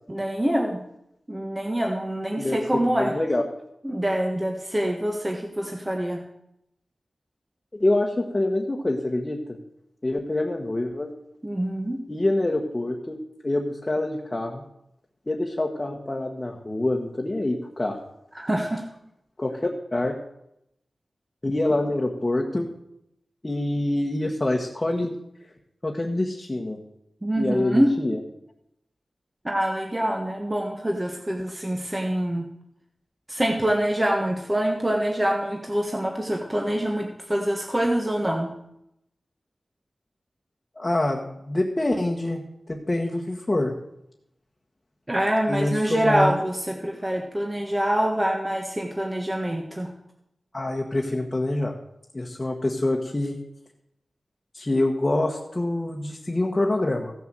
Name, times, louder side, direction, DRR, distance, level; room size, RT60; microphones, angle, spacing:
voice 1, 0.1-0.8 1.3-3.1 3.8-6.2 11.4-12.0 18.3-18.8 27.2-27.9 29.4-32.4 33.3-38.5 45.1-49.9, right 1 dB, 15° right, 1 dB, 1.4 m, -25 dB
voice 2, 3.0-3.4 7.7-9.6 10.0-11.1 12.1-13.2 13.4-14.6 15.3-18.0 19.4-20.1 21.4-22.6 23.4-25.1 25.8-26.8 27.4-28.2 40.8-42.4 42.7-43.7 45.5-46.3 50.5-51.7 52.1-53.3 54.5-57.1, left 1 dB, 20° left, 0 dB, 1.5 m, -25 dB
15.5 x 7.0 x 7.7 m, 0.80 s
wide cardioid pair, 120°, 0 cm